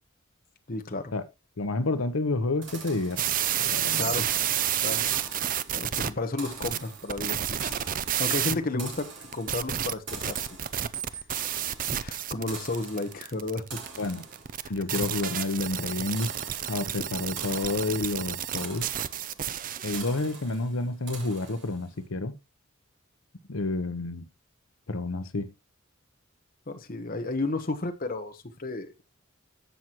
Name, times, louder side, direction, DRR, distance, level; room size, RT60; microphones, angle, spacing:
voice 1, 0.7-1.1 4.0-4.3 4.8-5.0 5.7-7.6 8.2-10.5 11.1-11.2 12.0-13.8 14.6-15.0 26.7-28.9, left 2 dB, 45° left, 1.2 m, -32 dB
voice 2, 1.6-4.1 8.5-8.9 14.0-14.2 14.7-16.3 16.7-18.9 19.8-22.4 23.5-24.2 24.9-25.5, left 2 dB, 85° left, 0.9 m, -30 dB
sound 1, 2.6-22.0, right 5 dB, 60° right, 3.6 m, -45 dB
sound 2, 3.2-6.1 6.6-8.6 9.3-20.0, right 10 dB, 40° right, 0.5 m, -30 dB
15.0 x 6.1 x 3.0 m
head